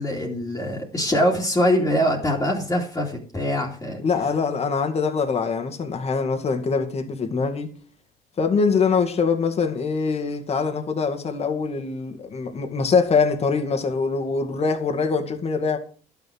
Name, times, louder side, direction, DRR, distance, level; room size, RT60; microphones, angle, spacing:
voice 1, 0.0-4.0, equal, 20° left, 2.6 m, -23 dB
voice 2, 4.0-7.7 8.4-15.8, left 5 dB, 40° left, 2.1 m, -23 dB
11.5 x 7.1 x 6.4 m
cardioid pair, 110°, 17 cm